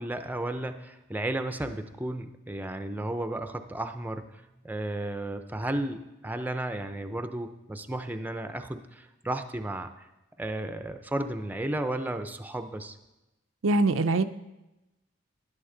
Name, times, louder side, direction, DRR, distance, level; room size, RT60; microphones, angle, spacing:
voice 1, 0.0-4.2 4.6-9.9 10.4-13.0, right 1 dB, 10° right, 8 dB, 0.5 m, -33 dB
voice 2, 13.6-14.2, right 2 dB, 85° right, 9 dB, 0.5 m, -23 dB
11.5 x 11.0 x 3.9 m, 0.99 s
head